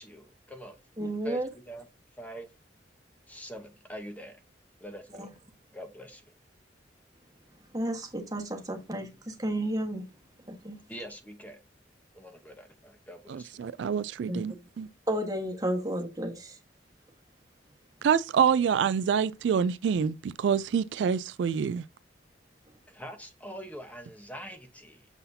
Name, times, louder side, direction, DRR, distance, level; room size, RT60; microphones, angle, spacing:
voice 1, 0.0-0.8 1.2-1.8 2.2-2.5 3.3-4.4 4.8-5.3 5.7-6.2 10.9-11.6 12.1-13.6 22.9-25.1, right 1 dB, 10° left, 0.9 m, -44 dB
voice 2, 1.0-1.5 5.1-5.3 7.7-10.0 10.5-10.8 14.3-14.4 15.1-16.6, right 1 dB, 20° right, 1.4 m, -32 dB
voice 3, 13.3-14.9 18.0-21.8, right 7 dB, 75° right, 0.3 m, -26 dB
7.0 x 5.7 x 2.7 m
head